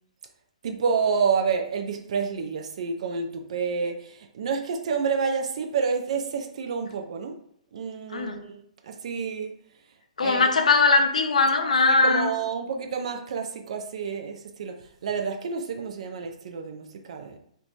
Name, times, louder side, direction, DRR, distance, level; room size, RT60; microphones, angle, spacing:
voice 1, 0.6-7.3 7.7-9.5 10.2-10.5 12.0-14.8 15.0-17.4, right 5 dB, 60° right, 0.4 m, -29 dB
voice 2, 10.2-12.3, left 3 dB, 80° left, 0.4 m, -20 dB
2.9 x 2.2 x 2.5 m
hypercardioid pair, 130°, 4 cm